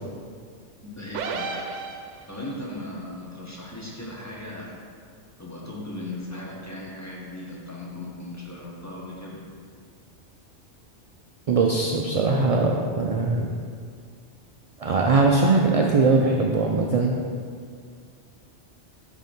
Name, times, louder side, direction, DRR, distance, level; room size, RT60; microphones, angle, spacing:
voice 1, 0.8-1.5 2.3-4.8 5.4-9.4, left 1 dB, 15° left, -4 dB, 1.0 m, -37 dB
sound 1, 1.1-2.5, right 4 dB, 85° right, 0.9 m, -32 dB
voice 2, 11.5-13.5 14.8-17.1, right 3 dB, 60° right, -1 dB, 0.3 m, -21 dB
7.5 x 3.6 x 5.3 m, 2.1 s
omnidirectional pair, 1.2 m